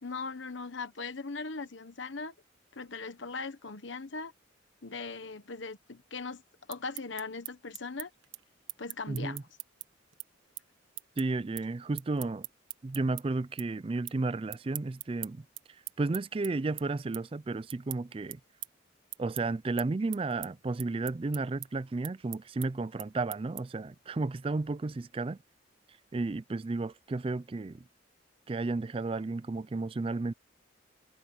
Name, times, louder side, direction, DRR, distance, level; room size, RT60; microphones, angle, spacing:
voice 1, 0.0-2.3 2.7-4.3 4.8-6.4 6.7-8.1 8.8-9.4, left 4 dB, 75° left, 1.2 m, -39 dB
sound 1, 6.5-13.2 13.6-14.2 14.5-23.9, right 15 dB, 90° right, 1.4 m, -43 dB
voice 2, 9.1-9.4 11.2-12.5 12.8-15.4 16.0-18.4 19.2-25.4 26.1-27.8 28.5-30.3, right 3 dB, 30° right, 0.4 m, -33 dB
head